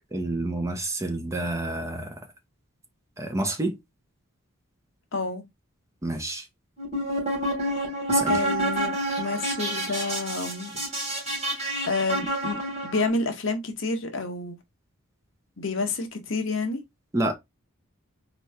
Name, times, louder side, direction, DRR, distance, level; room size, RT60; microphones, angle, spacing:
voice 1, 0.1-2.2 3.2-3.8 6.0-6.5 8.1-8.4 17.1-17.3, right 1 dB, 15° right, 0.6 m, -28 dB
voice 2, 5.1-5.4 8.3-10.7 11.9-14.6 15.6-16.8, left 3 dB, 65° left, 0.9 m, -29 dB
sound 1, 6.8-13.1, right 1 dB, 30° right, 2.8 m, -28 dB
4.2 x 3.1 x 3.3 m
head